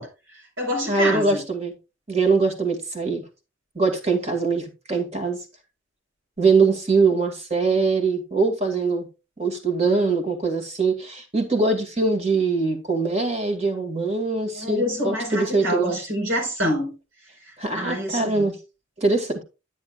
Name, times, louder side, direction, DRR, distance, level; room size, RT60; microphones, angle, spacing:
voice 1, 0.0-1.4 14.5-16.9 17.7-18.5, equal, 80° right, 4.4 m, -27 dB
voice 2, 0.9-1.7 2.1-3.2 3.8-5.4 6.4-9.1 9.4-16.0 17.6-18.6 19.0-19.4, right 4 dB, 30° right, 2.1 m, -22 dB
10.5 x 9.6 x 2.4 m
head